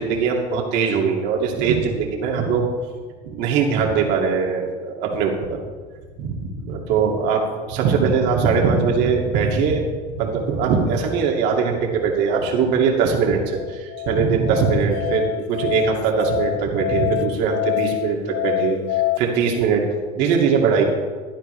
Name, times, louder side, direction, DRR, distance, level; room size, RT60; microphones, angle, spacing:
voice 1, 0.0-2.6 3.3-5.6 6.2-19.8 20.1-20.8, right 5 dB, 70° right, 0 dB, 2.5 m, -21 dB
Musical instrument, 13.5-19.2, left 18 dB, 70° left, 0.5 m, -26 dB
16.0 x 10.5 x 3.4 m, 1.5 s
supercardioid pair, 110°, 18 cm